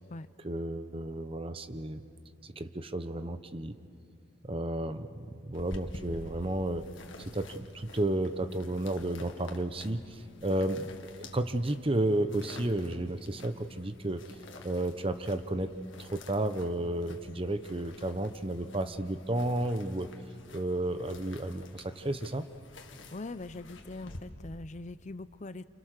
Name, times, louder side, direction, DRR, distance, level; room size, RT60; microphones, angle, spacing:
voice 1, 0.4-2.0 2.4-3.7 4.4-6.9 7.2-14.2 14.6-20.1 20.5-22.5, right 1 dB, 30° right, 10 dB, 0.9 m, -32 dB
sound 1, 5.5-24.2, left 2 dB, 80° left, 1.9 m, -50 dB
voice 2, 23.1-25.7, left 2 dB, 40° left, 14 dB, 0.6 m, -42 dB
29.0 x 28.0 x 6.6 m, 2.5 s
head